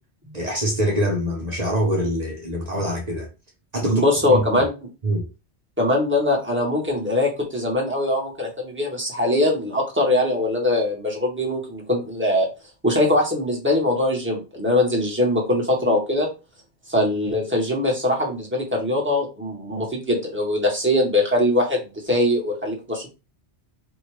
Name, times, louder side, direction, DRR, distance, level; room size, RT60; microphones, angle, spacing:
voice 1, 0.3-3.3 3.7-4.0 4.3-4.4 5.0-5.3, equal, 40° right, 1.0 m, -24 dB
voice 2, 3.8-4.7 5.8-12.5 12.8-16.3 16.9-21.8 22.1-23.1, left 1 dB, 10° right, 1.5 m, -22 dB
4.6 x 2.8 x 3.2 m
omnidirectional pair, 1.1 m